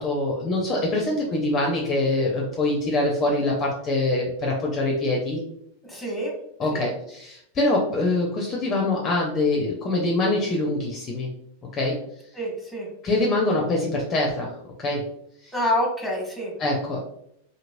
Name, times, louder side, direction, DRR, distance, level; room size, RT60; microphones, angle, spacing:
voice 1, 0.0-5.4 6.6-11.3 11.7-12.0 13.0-15.1 15.4-15.5 16.6-17.0, left 2 dB, 25° left, -1 dB, 0.6 m, -24 dB
voice 2, 5.8-6.3 6.7-6.9 12.3-12.9 15.5-16.5, equal, ahead, -2 dB, 1.0 m, -27 dB
2.9 x 2.8 x 2.5 m, 0.74 s
figure-of-eight pair, 90°, 0 cm